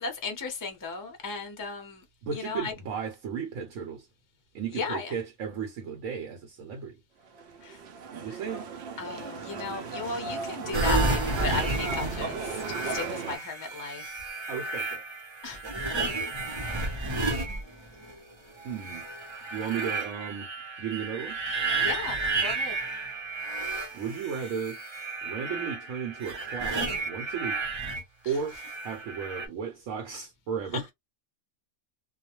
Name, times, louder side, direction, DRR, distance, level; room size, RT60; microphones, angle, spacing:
voice 1, 0.0-2.0 2.3-2.7 4.7-5.1 7.6-7.8 8.2-8.4 9.0-14.1 15.4-15.6 21.8-22.8 28.2-28.4 30.7-30.8, left 4 dB, 25° left, 0.5 m, -35 dB
voice 2, 2.2-4.1 4.5-7.0 8.1-8.7 14.5-15.0 18.6-19.0 19.5-20.5 20.8-21.4 23.9-24.8 25.2-27.6 28.2-28.6 28.8-30.9, right 7 dB, 80° right, 1.0 m, -34 dB
sound 1, 7.3-13.4, right 5 dB, 65° right, 0.7 m, -37 dB
sound 2, 10.7-18.1 18.7-28.0 28.5-29.5, right 3 dB, 30° right, 0.6 m, -32 dB
2.3 x 2.1 x 2.9 m
omnidirectional pair, 1.4 m